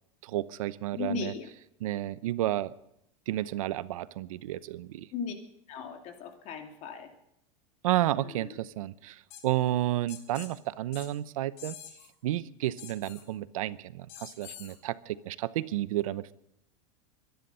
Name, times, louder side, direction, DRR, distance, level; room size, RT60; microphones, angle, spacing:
voice 1, 0.2-1.3 1.8-2.7 3.3-5.1 7.8-11.8 12.2-16.3, right 14 dB, 85° right, 16 dB, 0.8 m, -31 dB
voice 2, 0.9-1.5 5.1-5.3 5.7-7.1 8.1-8.6, left 6 dB, 45° left, 4 dB, 2.7 m, -37 dB
sound 1, 9.3-9.4 10.1-10.5 10.9-11.1 11.6-12.1 12.8-13.2 14.1-14.8, left 11 dB, 60° left, 3.2 m, -46 dB
24.0 x 10.5 x 5.6 m, 0.79 s
supercardioid pair, 135°, 17 cm